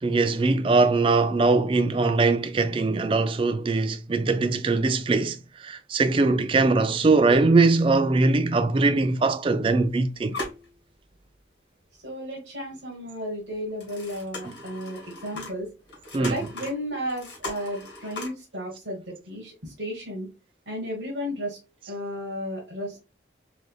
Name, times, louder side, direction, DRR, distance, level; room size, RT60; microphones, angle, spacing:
voice 1, 0.0-10.4 16.1-16.4, right 3 dB, 30° right, 0.3 m, -21 dB
sound 1, 7.1-7.2 7.5-7.7 8.6-8.7 9.2-9.9 10.1-11.3 11.8-11.9 13.5-18.3, left 2 dB, 70° left, 1.8 m, -39 dB
voice 2, 12.0-15.7 16.2-20.3 20.6-21.6 21.9-23.0, equal, 90° right, 1.4 m, -33 dB
3.8 x 3.3 x 2.3 m
head